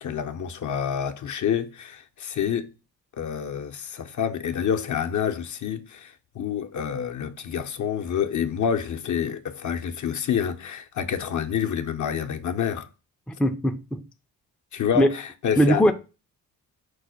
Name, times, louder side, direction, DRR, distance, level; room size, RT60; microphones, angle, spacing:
voice 1, 0.0-2.7 3.2-12.9 14.7-15.9, left 8 dB, 50° left, 0.6 m, -28 dB
voice 2, 13.3-14.0 15.0-15.1 15.6-15.9, equal, 5° left, 0.4 m, -20 dB
4.6 x 2.1 x 4.7 m
cardioid pair, 70°, 38 cm